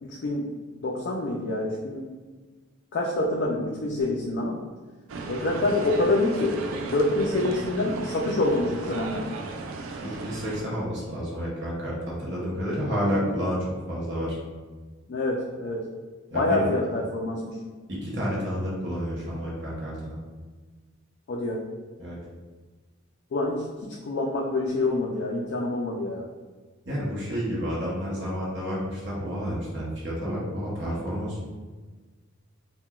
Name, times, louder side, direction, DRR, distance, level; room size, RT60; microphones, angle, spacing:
voice 1, 0.0-0.5 0.8-2.1 2.9-4.6 5.3-6.6 6.9-9.2 15.1-15.9 16.3-17.6 21.3-21.7 23.3-26.3, left 2 dB, 55° left, -2 dB, 0.3 m, -26 dB
sound 1, 5.1-10.6, right 3 dB, 80° right, 0.3 m, -35 dB
voice 2, 10.0-14.4 16.3-16.7 17.9-20.2 22.0-22.2 26.9-31.4, equal, 55° right, -6 dB, 0.8 m, -30 dB
3.8 x 2.1 x 2.2 m, 1.4 s
head